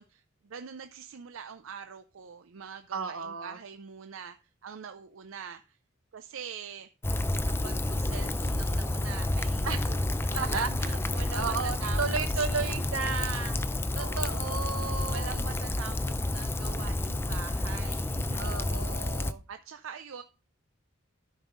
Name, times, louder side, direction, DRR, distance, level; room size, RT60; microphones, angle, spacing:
voice 1, 0.0-5.8 6.1-6.9 7.6-12.4 14.0-14.4 15.1-18.5 19.5-20.2, right 7 dB, 70° right, 9 dB, 0.5 m, -43 dB
voice 2, 2.9-3.6 9.6-9.9 10.4-10.9 11.3-13.6 14.0-15.5 18.3-19.4, right 5 dB, 90° right, 9 dB, 1.2 m, -33 dB
Rain, 7.0-19.3, left 1 dB, 10° left, 0.4 m, -30 dB
13.0 x 5.4 x 3.8 m, 0.33 s
head